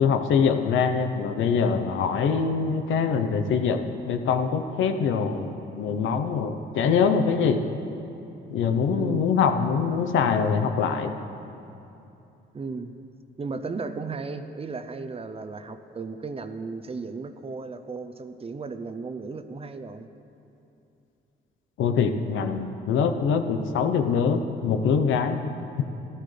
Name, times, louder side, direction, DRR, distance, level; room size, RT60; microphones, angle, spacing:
voice 1, 0.0-7.6 8.5-11.1 21.8-25.4, left 6 dB, 80° left, 7 dB, 0.8 m, -24 dB
voice 2, 8.9-9.3 12.5-13.0 13.4-20.1, right 4 dB, 30° right, 9 dB, 0.6 m, -35 dB
14.5 x 12.5 x 3.3 m, 2.8 s
cardioid pair, 90°, 20 cm